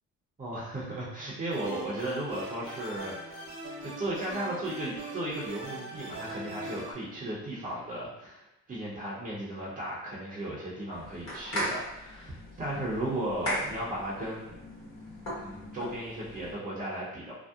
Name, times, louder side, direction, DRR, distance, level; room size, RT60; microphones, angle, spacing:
voice 1, 0.4-14.6 15.4-17.3, right 1 dB, 25° right, -6 dB, 0.7 m, -35 dB
sound 1, 1.5-6.9, right 2 dB, 70° right, 0.8 m, -41 dB
sound 2, 10.9-16.5, equal, 60° left, 1.2 m, -38 dB
2.7 x 2.0 x 2.3 m, 0.86 s
cardioid pair, 90°, 30 cm